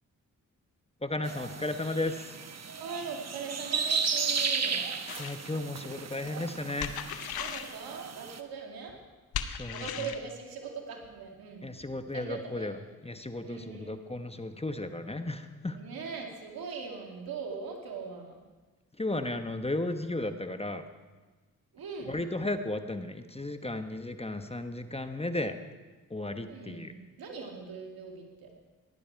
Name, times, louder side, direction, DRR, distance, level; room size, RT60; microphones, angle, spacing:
voice 1, 1.0-2.3 5.2-7.1 9.5-9.8 11.6-12.8 13.0-15.8 19.0-20.9 22.1-25.5 26.1-26.9, left 2 dB, 15° left, 8 dB, 1.1 m, -34 dB
sound 1, 1.2-8.4, right 5 dB, 45° right, 1.1 m, -34 dB
voice 2, 2.8-4.8 7.4-9.0 9.7-11.7 12.1-12.7 13.4-14.0 15.7-18.4 21.7-22.2 26.5-28.5, right 5 dB, 80° right, 2 dB, 2.2 m, -40 dB
sound 2, 5.1-5.4 6.8-7.7 9.3-10.2, left 9 dB, 85° left, 0.8 m, -36 dB
16.0 x 11.0 x 4.7 m, 1.3 s
supercardioid pair, 50°, 36 cm